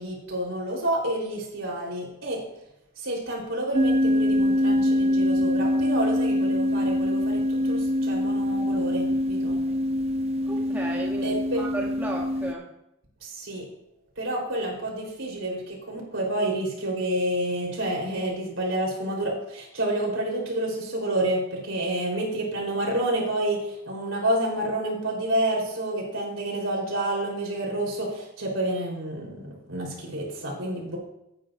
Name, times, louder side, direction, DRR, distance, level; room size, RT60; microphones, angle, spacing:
voice 1, 0.0-2.4 3.0-9.6 11.2-11.6 13.2-13.7 14.2-31.0, right 1 dB, 70° right, -3 dB, 3.9 m, -29 dB
sound 1, 3.7-12.5, left 1 dB, 30° right, 0.4 m, -24 dB
voice 2, 10.5-12.7, right 2 dB, 10° right, -2 dB, 1.0 m, -34 dB
15.5 x 9.2 x 2.6 m, 0.84 s
head